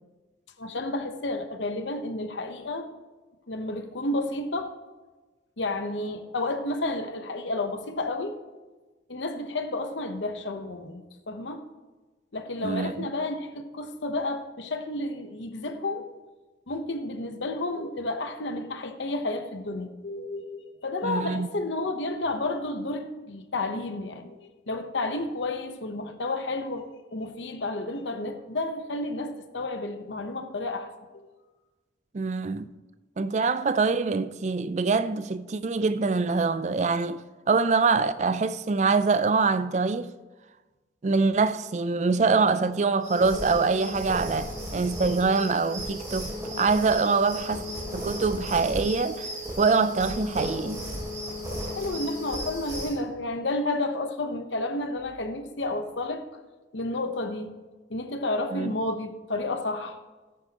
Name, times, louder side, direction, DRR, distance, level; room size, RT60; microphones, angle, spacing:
voice 1, 0.6-2.9 3.5-4.7 5.6-8.4 9.1-11.6 12.3-16.2 16.7-26.8 27.1-30.9 31.1-31.3 51.5-56.2 56.7-57.5 57.9-60.0, left 2 dB, 80° left, 0.9 m, -31 dB
voice 2, 12.6-13.1 21.0-21.5 32.1-32.7 33.2-40.1 41.0-47.6 47.9-49.3 49.6-50.9 58.5-58.8, right 4 dB, 40° right, 0.4 m, -24 dB
sound 1, 43.0-53.0, equal, 20° right, 2.6 m, -35 dB
13.0 x 9.9 x 2.9 m
head